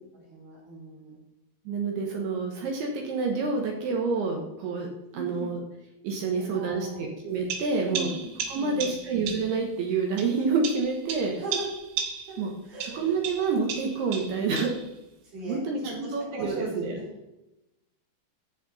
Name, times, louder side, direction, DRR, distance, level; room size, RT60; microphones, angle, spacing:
voice 1, 0.1-1.2 5.1-5.5 6.3-7.0 7.8-9.0 11.4-11.7 12.3-13.1 15.2-17.1, right 2 dB, 45° right, -6 dB, 4.9 m, -38 dB
voice 2, 1.7-4.9 5.1-5.6 6.0-8.1 8.5-11.3 12.4-12.5 12.9-14.7 15.4-17.0, right 4 dB, 70° right, 1 dB, 3.0 m, -28 dB
sound 1, 7.5-9.6 10.2-12.5 12.8-14.9, right 7 dB, 90° right, 3.6 m, -35 dB
14.5 x 5.8 x 4.1 m, 0.93 s
omnidirectional pair, 5.2 m